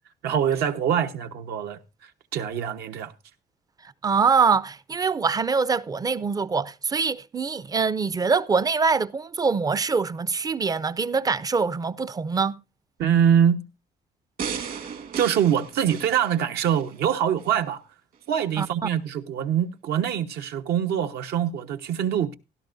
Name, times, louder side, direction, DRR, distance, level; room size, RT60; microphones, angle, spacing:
voice 1, 0.2-3.1 13.0-13.7 15.2-17.8 18.3-22.3, right 9 dB, 75° right, 1.1 m, -24 dB
voice 2, 3.8-12.6 18.6-18.9, right 5 dB, 20° right, 0.5 m, -24 dB
sound 1, 14.4-16.9 17.4-17.5, right 7 dB, 55° right, 1.6 m, -35 dB
16.5 x 12.5 x 2.6 m
cardioid pair, 110°, 17 cm